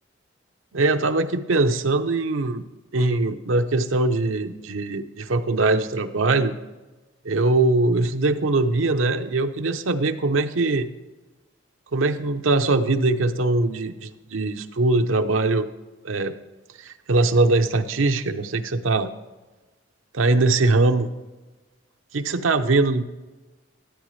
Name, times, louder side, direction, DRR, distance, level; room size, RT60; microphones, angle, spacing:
voice 1, 0.7-2.6 2.9-6.5 7.2-10.9 11.9-15.7 16.0-16.3 16.8-19.1 20.1-21.1 22.1-23.0, right 2 dB, 85° right, 8 dB, 0.7 m, -21 dB
14.0 x 9.2 x 3.2 m, 1.2 s
head